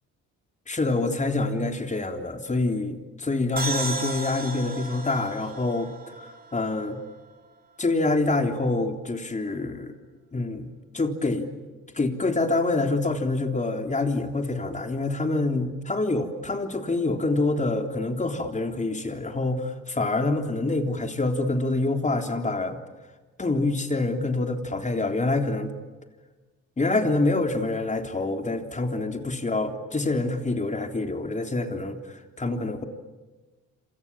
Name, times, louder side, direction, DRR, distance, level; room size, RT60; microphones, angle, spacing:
voice 1, 0.7-7.0 7.8-9.9 10.3-10.7 10.9-11.5 11.9-22.8 23.4-25.7 26.8-32.8, left 2 dB, 25° left, 5 dB, 3.6 m, -26 dB
sound 1, 3.6-7.1, right 3 dB, 30° right, 4.4 m, -34 dB
28.0 x 27.0 x 7.5 m, 1.2 s
cardioid pair, 90°, 30 cm